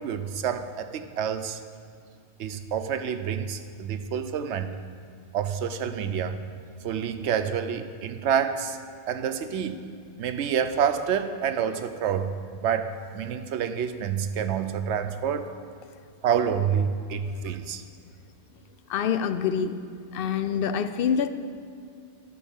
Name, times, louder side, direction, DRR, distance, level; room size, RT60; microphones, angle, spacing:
voice 1, 0.0-1.6 2.4-4.8 5.3-6.4 6.8-8.8 9.1-9.9 10.2-15.5 16.2-17.8, right 7 dB, 85° right, 0.9 m, -28 dB
voice 2, 18.9-19.8 20.1-21.3, left 7 dB, 65° left, 0.7 m, -26 dB
12.5 x 5.5 x 7.2 m
omnidirectional pair, 1.2 m